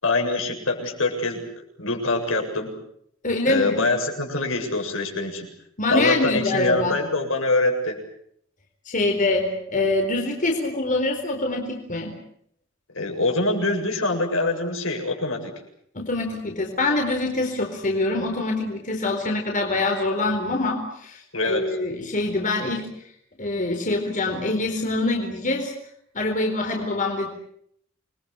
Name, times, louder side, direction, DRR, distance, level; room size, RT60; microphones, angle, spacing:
voice 1, 0.0-2.7 3.5-5.5 5.9-8.0 12.9-15.5 21.3-21.6, left 2 dB, 75° left, 3 dB, 7.7 m, -24 dB
voice 2, 3.2-3.9 5.8-7.0 8.9-12.1 15.9-22.9 23.4-25.7 26.1-27.3, left 2 dB, 40° left, 2 dB, 4.3 m, -24 dB
29.0 x 22.5 x 8.2 m, 0.68 s
head